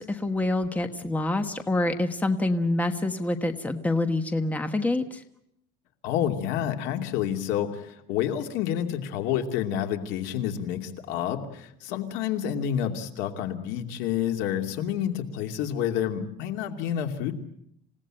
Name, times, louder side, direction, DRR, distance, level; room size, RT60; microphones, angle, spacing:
voice 1, 0.0-5.2, left 2 dB, 10° left, 8 dB, 1.3 m, -26 dB
voice 2, 6.0-17.3, left 10 dB, 80° left, 5 dB, 2.8 m, -29 dB
28.0 x 17.0 x 9.0 m, 0.76 s
cardioid pair, 160°, 19 cm